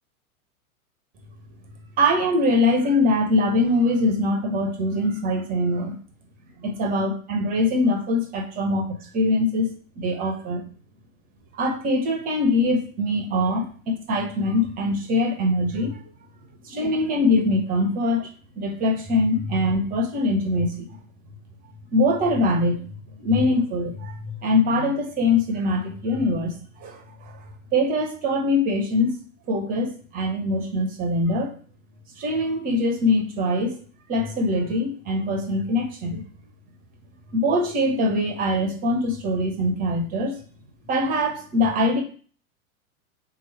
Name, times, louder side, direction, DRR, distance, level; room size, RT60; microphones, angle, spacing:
voice 1, 2.0-6.0 6.6-10.6 11.6-16.0 16.6-18.3 18.6-20.9 21.9-22.8 23.2-27.3 27.7-29.1 29.5-31.5 32.2-33.8 34.1-36.2 37.3-40.4 40.9-42.0, left 1 dB, 20° right, 3 dB, 0.7 m, -23 dB
3.7 x 3.0 x 4.5 m, 0.43 s
figure-of-eight pair, 95°, 43 cm